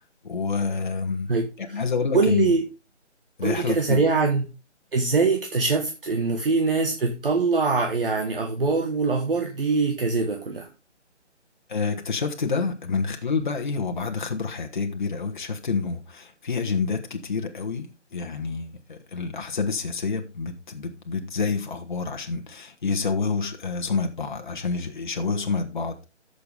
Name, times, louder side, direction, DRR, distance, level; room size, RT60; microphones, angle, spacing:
voice 1, 0.2-1.3 1.6-2.5 3.4-4.0 11.7-26.1, left 4 dB, 40° left, 1.4 m, -28 dB
voice 2, 1.3-1.8 2.1-2.6 3.4-4.4 4.9-10.7, right 4 dB, 50° right, 1.5 m, -23 dB
13.0 x 6.9 x 3.5 m
hypercardioid pair, 170°, 36 cm